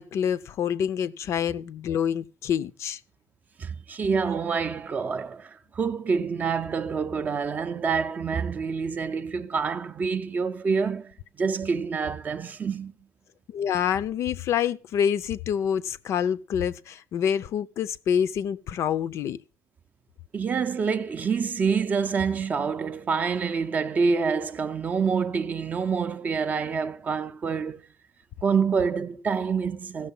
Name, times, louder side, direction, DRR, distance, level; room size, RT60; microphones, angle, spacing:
voice 1, 0.0-3.0 13.5-19.4, left 8 dB, 45° left, 0.5 m, -27 dB
voice 2, 3.6-12.9 20.3-27.9 28.4-30.1, right 5 dB, 25° right, 0.5 m, -27 dB
15.5 x 6.5 x 5.4 m
cardioid pair, 160°, 7 cm